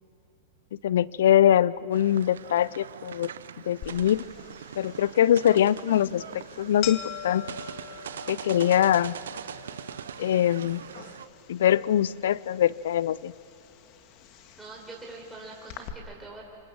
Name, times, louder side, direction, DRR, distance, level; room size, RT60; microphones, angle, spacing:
voice 1, 0.7-3.3 3.7-4.2 4.8-7.4 8.3-9.2 10.2-10.8 11.5-13.3, left 11 dB, 65° left, 21 dB, 0.6 m, -23 dB
sound 1, 1.9-11.3, right 8 dB, 75° right, 0.9 m, -42 dB
sound 2, 3.8-15.9, left 10 dB, 45° left, 2.0 m, -44 dB
voice 2, 14.6-16.4, right 3 dB, 10° right, -3 dB, 4.6 m, -44 dB
27.0 x 25.5 x 7.8 m, 2.7 s
hypercardioid pair, 105°, 0 cm